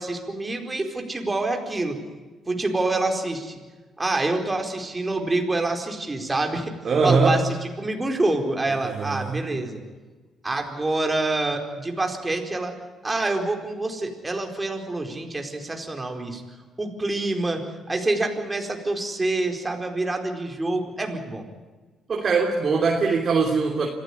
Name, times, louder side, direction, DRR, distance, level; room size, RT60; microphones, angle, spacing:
voice 1, 0.0-2.0 2.5-3.5 4.0-6.7 7.0-7.4 7.8-9.8 10.4-12.8 13.0-16.4 16.8-21.4, right 2 dB, 20° right, 4 dB, 4.5 m, -26 dB
voice 2, 6.8-7.4 8.8-9.4 22.1-23.9, right 4 dB, 50° right, 1 dB, 3.2 m, -21 dB
26.0 x 15.5 x 9.9 m, 1.3 s
cardioid pair, 90°, 0 cm